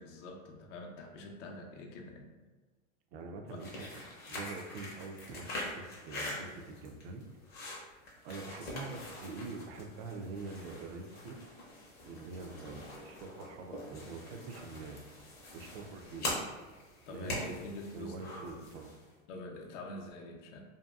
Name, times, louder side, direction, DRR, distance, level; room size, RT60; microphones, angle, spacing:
voice 1, 0.0-2.3 3.4-3.6 12.1-12.2 17.1-18.3 19.3-20.6, left 2 dB, 65° left, 1 dB, 0.6 m, -46 dB
voice 2, 3.1-7.2 8.2-11.5 12.0-15.1 15.5-16.3 17.1-17.6 17.9-18.9, right 3 dB, 50° right, 4 dB, 0.4 m, -45 dB
sound 1, 3.5-19.1, left 1 dB, 25° left, 0.6 m, -44 dB
2.7 x 2.2 x 2.2 m, 1.3 s
hypercardioid pair, 125°, 39 cm